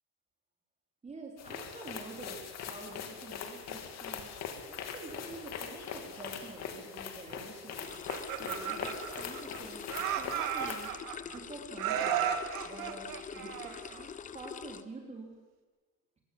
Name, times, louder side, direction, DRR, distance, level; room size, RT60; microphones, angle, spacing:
voice 1, 1.0-4.4 4.7-7.9 8.4-10.9 11.2-12.3 12.6-15.3, right 3 dB, 20° right, 1 dB, 3.1 m, -47 dB
sound 1, 1.4-10.9, left 7 dB, 50° left, 2.8 m, -42 dB
sound 2, 7.8-14.8, left 7 dB, 25° left, 0.7 m, -45 dB
Laughter, 7.9-9.6 9.9-11.4 11.8-14.0, right 9 dB, 80° right, 2.8 m, -34 dB
24.0 x 21.5 x 7.6 m, 1.2 s
cardioid pair, 180°, 33 cm